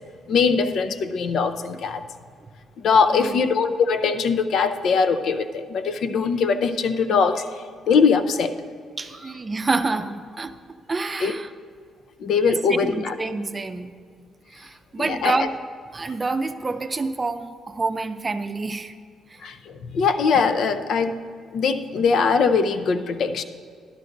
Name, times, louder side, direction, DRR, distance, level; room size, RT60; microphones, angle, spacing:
voice 1, 0.3-2.0 2.8-7.5 7.9-8.5 11.2-11.3 12.2-13.1 15.0-15.4 19.4-21.2 21.5-23.4, left 5 dB, 65° left, 9 dB, 0.6 m, -21 dB
voice 2, 3.1-3.4 9.0-10.5 10.9-11.5 12.5-13.9 14.5-15.5 15.9-18.9 19.3-19.4, right 3 dB, 25° right, 9 dB, 0.5 m, -27 dB
12.5 x 12.0 x 2.6 m, 2.1 s
cardioid pair, 90°, 0 cm